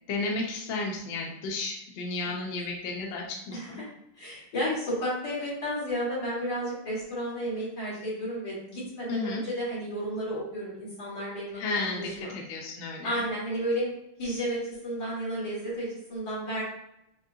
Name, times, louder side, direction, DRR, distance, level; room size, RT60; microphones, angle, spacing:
voice 1, 0.1-3.8 9.1-9.4 11.5-13.2, left 3 dB, 70° left, 0 dB, 1.4 m, -33 dB
voice 2, 3.5-3.9 4.2-12.3 13.0-13.9 14.2-16.6, equal, 55° left, -7 dB, 2.2 m, -32 dB
6.1 x 2.2 x 2.7 m, 0.83 s
omnidirectional pair, 2.3 m